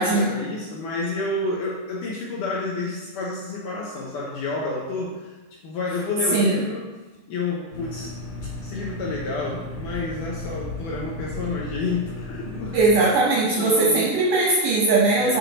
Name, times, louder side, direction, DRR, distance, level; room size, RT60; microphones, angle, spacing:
voice 1, 0.0-5.3 5.6-6.8 7.3-8.1 8.6-13.1 13.6-14.1 15.1-15.4, left 3 dB, 75° left, -4 dB, 2.0 m, -29 dB
voice 2, 6.3-6.6 12.7-15.4, right 3 dB, 75° right, -3 dB, 2.0 m, -19 dB
sound 1, 7.7-12.9, left 2 dB, 40° left, 1.6 m, -35 dB
7.6 x 4.8 x 4.0 m, 1.2 s
omnidirectional pair, 4.6 m